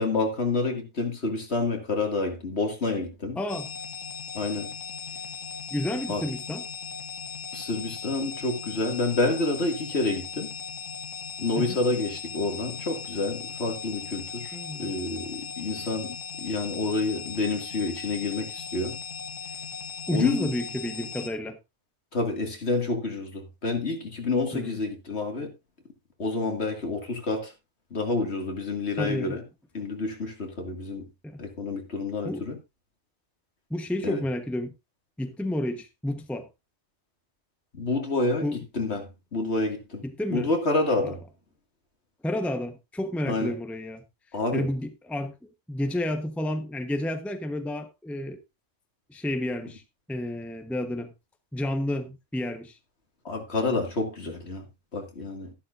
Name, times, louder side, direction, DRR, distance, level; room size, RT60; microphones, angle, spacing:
voice 1, 0.0-3.4 4.3-4.7 6.1-6.2 7.5-10.5 11.4-19.0 20.1-20.5 22.1-25.5 26.2-27.5 27.9-29.4 29.7-31.1 31.4-32.6 34.0-34.2 37.7-38.5 38.7-40.0 40.3-41.2 43.3-43.5 44.3-44.7 53.2-54.7 54.9-55.5, left 3 dB, 60° left, 2.5 m, -28 dB
voice 2, 3.4-3.7 5.7-6.6 11.6-11.8 14.5-14.9 20.1-21.6 24.5-24.8 29.0-29.4 31.2-31.4 32.2-32.5 33.7-34.7 35.2-36.5 38.4-38.6 40.0-40.5 41.0-41.1 42.2-44.0 44.5-45.3 45.7-48.4 49.1-49.8 50.1-51.1 51.5-52.8, left 1 dB, ahead, 0.9 m, -30 dB
sound 1, 3.5-21.3, left 6 dB, 90° left, 1.6 m, -38 dB
13.0 x 11.5 x 2.6 m
omnidirectional pair, 1.2 m